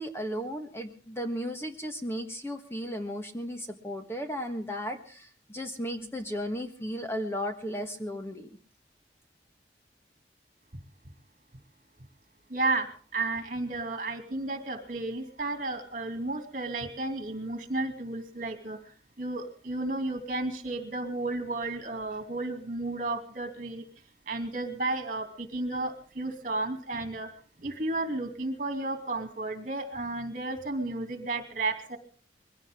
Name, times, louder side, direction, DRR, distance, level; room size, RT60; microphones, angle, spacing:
voice 1, 0.0-8.6, equal, 15° left, 5 dB, 1.5 m, -35 dB
voice 2, 12.5-18.8 19.2-23.8 24.3-27.3 27.6-32.0, right 2 dB, 50° right, 6 dB, 2.7 m, -33 dB
22.0 x 16.5 x 3.7 m, 0.41 s
head